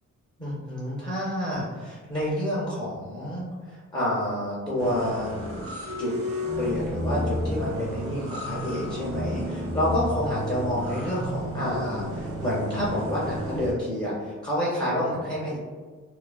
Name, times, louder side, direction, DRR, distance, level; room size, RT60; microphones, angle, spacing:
voice 1, 0.4-5.3 6.0-6.1 6.6-15.6, left 1 dB, 15° left, -8 dB, 0.4 m, -29 dB
sound 1, 4.8-13.7, equal, 50° right, 0.5 m, -31 dB
2.4 x 2.3 x 2.2 m, 1.4 s
cardioid pair, 145°, 29 cm